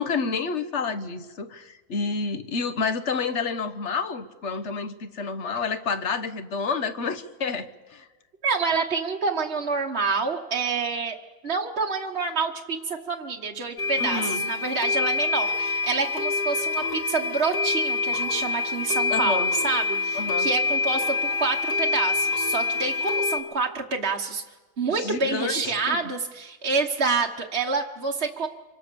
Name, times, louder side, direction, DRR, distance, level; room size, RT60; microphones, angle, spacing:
voice 1, 0.0-8.1 14.0-14.4 19.1-19.5 20.1-20.5 24.9-26.0, left 5 dB, 45° left, 11 dB, 1.3 m, -29 dB
voice 2, 8.4-11.2 11.4-24.4 24.8-28.5, right 4 dB, 40° right, -1 dB, 1.3 m, -27 dB
sound 1, 13.8-23.4, left 4 dB, 70° left, 2.5 m, -26 dB
27.0 x 24.5 x 6.9 m, 1.3 s
omnidirectional pair, 1.8 m